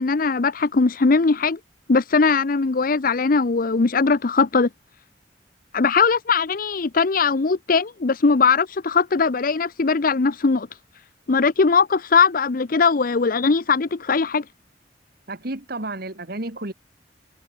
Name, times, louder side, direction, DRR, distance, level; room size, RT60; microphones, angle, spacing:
voice 1, 0.0-1.6 1.9-4.7 5.7-10.7 11.3-14.4, left 4 dB, 50° left, 0.6 m, -20 dB
voice 2, 15.3-16.7, right 2 dB, 55° right, 2.3 m, -31 dB
head